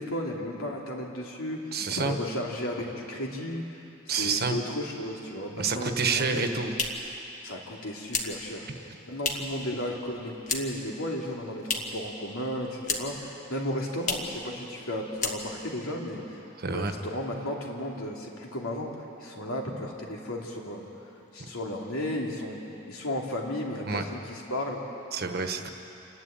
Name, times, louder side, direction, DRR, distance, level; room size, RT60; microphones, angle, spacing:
voice 1, 0.0-3.8 4.2-6.4 7.4-8.7 9.1-16.4 16.7-18.9 19.2-20.9 21.3-22.6 22.9-24.8, left 1 dB, 85° left, -1 dB, 3.0 m, -34 dB
voice 2, 1.7-2.2 4.1-4.6 5.6-6.7 16.6-16.9 23.9-24.0 25.1-25.7, right 4 dB, 50° right, 6 dB, 1.3 m, -28 dB
sound 1, 6.2-9.7 9.9-10.9 11.2-12.1 12.4-13.3 13.6-13.7 14.0-14.4 14.7-14.9 15.1-15.8, left 3 dB, 35° left, 1.8 m, -33 dB
28.5 x 11.5 x 8.9 m, 2.9 s
head